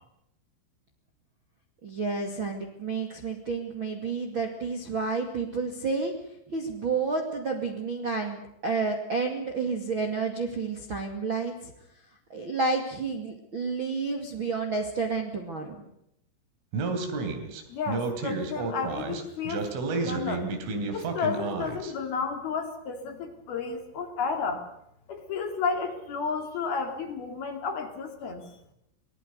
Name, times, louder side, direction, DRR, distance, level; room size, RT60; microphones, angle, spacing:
voice 1, 1.8-6.1 6.5-11.7 12.3-15.8, right 4 dB, 40° right, 2 dB, 1.9 m, -30 dB
Speech, 16.7-21.9, right 3 dB, 75° right, 5.4 m, -31 dB
voice 2, 17.7-20.5 20.9-24.7 25.1-28.4, left 5 dB, 55° left, 5 dB, 4.0 m, -32 dB
25.5 x 20.0 x 6.8 m, 0.77 s
omnidirectional pair, 5.9 m